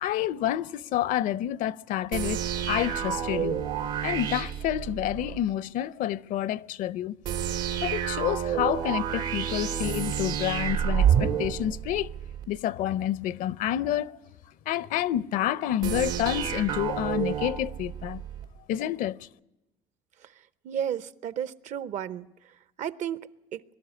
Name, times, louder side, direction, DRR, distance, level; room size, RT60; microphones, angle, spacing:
voice 1, 0.0-3.6 4.0-7.1 7.8-12.1 12.5-14.1 14.7-18.2 18.7-19.2, left 12 dB, 70° left, 0.6 m, -29 dB
sound 1, 2.1-5.4 7.2-12.5 15.8-18.5, right 9 dB, 85° right, 2.1 m, -29 dB
voice 2, 20.6-22.3 22.8-23.2 23.5-23.6, right 9 dB, 60° right, 0.8 m, -32 dB
23.0 x 12.5 x 9.7 m
cardioid pair, 105°, 14 cm